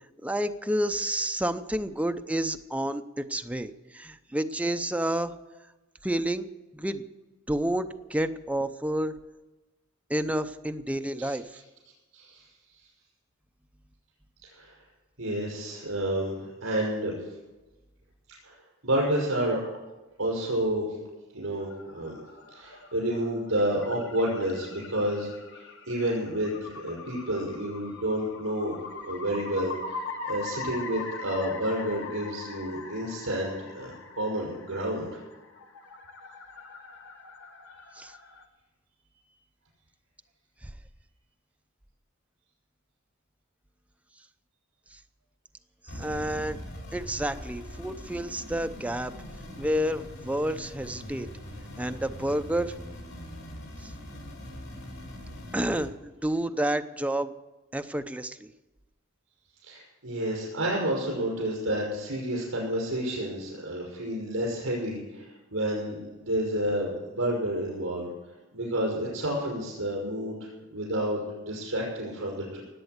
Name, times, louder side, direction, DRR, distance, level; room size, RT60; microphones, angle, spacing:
voice 1, 0.2-5.3 6.0-6.5 6.7-7.0 7.5-9.1 10.1-11.6 38.0-38.1 40.6-40.7 44.9-45.0 45.9-46.6 46.9-49.1 49.6-51.3 51.8-52.7 53.8-53.9 55.5-57.3 57.7-58.5, right 1 dB, 5° right, 8 dB, 0.6 m, -30 dB
voice 2, 15.2-17.1 18.4-18.6 18.8-19.6 20.2-20.8 21.3-22.1 22.5-28.7 29.0-35.2 59.6-68.1 68.5-72.6, right 1 dB, 75° right, -3 dB, 5.7 m, -30 dB
sound 1, 21.6-38.4, left 3 dB, 65° left, 1.8 m, -42 dB
sound 2, 45.9-55.9, equal, 90° left, 5.4 m, -42 dB
18.5 x 8.3 x 8.0 m, 1.1 s
head